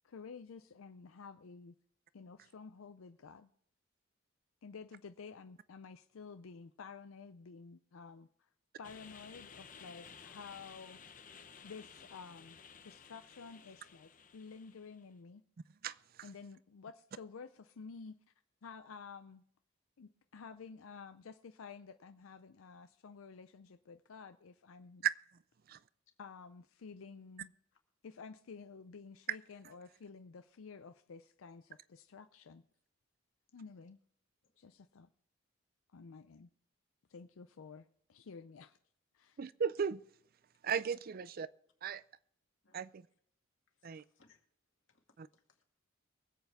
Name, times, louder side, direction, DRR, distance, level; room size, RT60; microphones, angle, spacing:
voice 1, 0.0-1.7 2.1-3.5 4.6-8.5 8.8-11.0 11.6-12.6 12.8-15.4 16.2-18.2 18.6-19.4 20.0-25.1 26.2-27.5 28.0-32.6 33.5-34.0 34.6-35.1 35.9-36.5 37.1-38.8 39.1-39.4, left 5 dB, 85° left, 0.5 m, -51 dB
sound 1, 8.8-15.0, left 6 dB, 40° left, 0.9 m, -55 dB
voice 2, 39.4-40.0 40.6-41.5 41.8-42.0 42.7-43.1 43.8-44.0 45.2-45.3, right 7 dB, 45° right, 0.4 m, -35 dB
voice 3, 43.7-44.4 44.9-45.0 45.3-45.7, left 4 dB, 65° left, 2.3 m, -70 dB
23.5 x 8.0 x 3.5 m
head